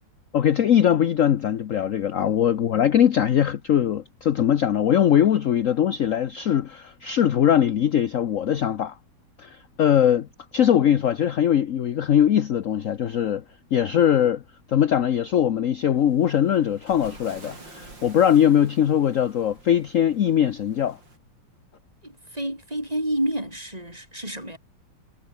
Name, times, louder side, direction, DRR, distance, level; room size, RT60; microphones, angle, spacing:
voice 1, 0.3-9.0 9.4-13.4 13.7-14.4 14.7-21.0, left 9 dB, 60° left, 0.9 m, -21 dB
Waves surf, 16.0-21.2, right 3 dB, 55° right, 6.7 m, -48 dB
voice 2, 22.0-24.6, right 1 dB, 15° right, 7.8 m, -29 dB
omnidirectional pair, 2.4 m